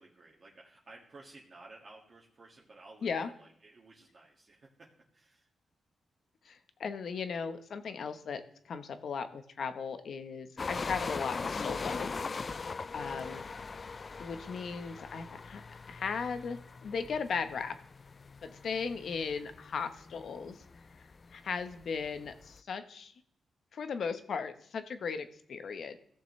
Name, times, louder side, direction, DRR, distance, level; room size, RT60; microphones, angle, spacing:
voice 1, 0.0-5.5 12.9-13.5, right 2 dB, 40° right, -3 dB, 2.0 m, -55 dB
voice 2, 6.4-12.1 12.5-12.6 12.9-13.4 14.2-17.7 18.4-20.6 21.0-23.1 23.7-26.0, left 5 dB, 65° left, 9 dB, 1.1 m, -37 dB
sound 1, 10.6-22.6, left 4 dB, 35° left, 0.3 m, -41 dB
16.5 x 6.9 x 3.2 m, 0.66 s
cardioid pair, 105°, 0 cm